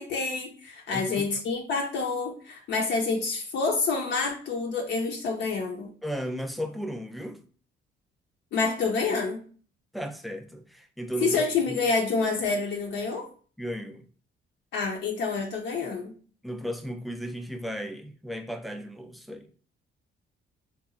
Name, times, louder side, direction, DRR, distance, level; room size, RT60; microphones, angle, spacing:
voice 1, 0.0-5.9 8.5-9.4 11.2-13.3 14.7-16.1, left 4 dB, 65° left, 0.5 m, -28 dB
voice 2, 0.9-1.4 6.0-7.4 9.9-11.8 13.6-14.1 16.4-19.5, equal, ahead, 0.3 m, -35 dB
2.8 x 2.3 x 2.4 m
cardioid pair, 90°, 20 cm